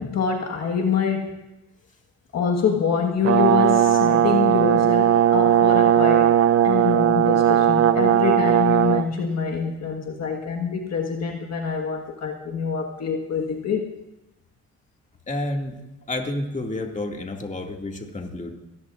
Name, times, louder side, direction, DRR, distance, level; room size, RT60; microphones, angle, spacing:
voice 1, 0.0-1.4 2.3-6.4 6.6-13.9, left 6 dB, 60° left, 1 dB, 1.7 m, -25 dB
Brass instrument, 3.2-9.1, right 10 dB, 50° right, 0.7 m, -18 dB
voice 2, 15.3-15.8 16.1-18.5, left 1 dB, 25° left, 1 dB, 2.4 m, -30 dB
25.5 x 19.0 x 2.6 m, 0.94 s
cardioid pair, 90°, 30 cm